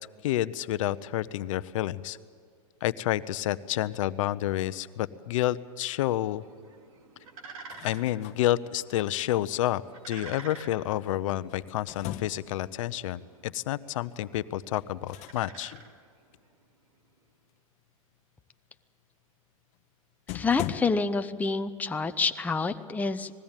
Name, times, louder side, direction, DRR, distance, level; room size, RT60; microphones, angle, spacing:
voice 1, 0.2-2.2 2.8-6.4 7.8-15.7, left 14 dB, 65° left, 15 dB, 0.7 m, -29 dB
sound 1, 6.2-16.5, right 4 dB, 75° right, 3.1 m, -50 dB
sound 2, 7.5-8.4 11.1-12.6 14.7-15.4 15.7-15.9 19.7-19.8 20.3-20.8, left 14 dB, 40° left, 1.0 m, -39 dB
voice 2, 20.3-23.3, left 4 dB, 10° left, 8 dB, 0.7 m, -28 dB
20.0 x 16.0 x 8.9 m, 2.2 s
hypercardioid pair, 125°, 18 cm